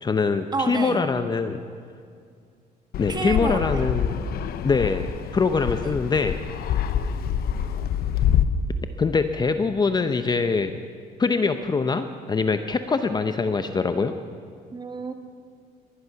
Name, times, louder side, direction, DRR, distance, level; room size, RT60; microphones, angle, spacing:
voice 1, 0.0-1.6 3.0-4.2 4.6-6.4 9.0-10.8 11.2-14.1, left 4 dB, 25° left, 9 dB, 0.8 m, -23 dB
voice 2, 0.5-1.1 3.1-3.9 5.8-6.0 14.7-15.1, right 3 dB, 25° right, 6 dB, 1.6 m, -30 dB
Fixed-wing aircraft airplane, 2.9-8.4, left 9 dB, 65° left, 0.9 m, -26 dB
21.5 x 11.0 x 5.8 m, 2.2 s
cardioid pair, 110°, 17 cm